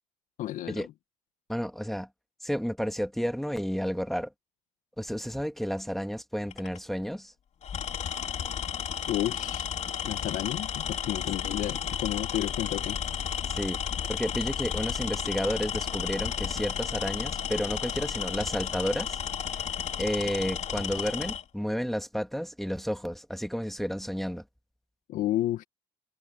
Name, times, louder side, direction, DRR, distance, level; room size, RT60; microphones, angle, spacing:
voice 1, 0.4-0.8 9.1-9.7 10.1-13.0 25.1-25.6, left 14 dB, 70° left, 1.9 m, -31 dB
voice 2, 1.5-2.1 2.4-4.3 5.0-7.3 13.5-13.8 14.1-19.2 20.0-24.4, equal, ahead, 2.2 m, -31 dB
Tools, 6.5-6.8 7.6-21.4, left 8 dB, 55° left, 3.1 m, -33 dB
hypercardioid pair, 55°, 14 cm